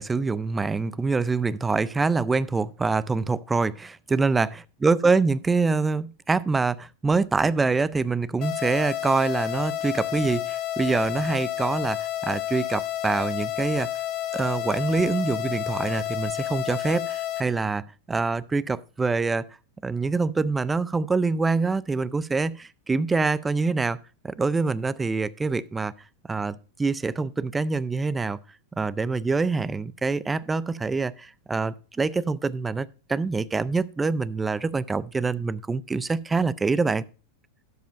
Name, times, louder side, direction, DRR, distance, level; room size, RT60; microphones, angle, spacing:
voice 1, 0.0-13.9 14.3-19.5 19.8-24.0 24.2-25.9 26.3-28.4 28.8-37.0, right 4 dB, 15° right, 0.4 m, -25 dB
sound 1, 8.4-17.4, left 13 dB, 40° left, 1.1 m, -30 dB
12.5 x 5.3 x 5.1 m
hypercardioid pair, 120°, 0 cm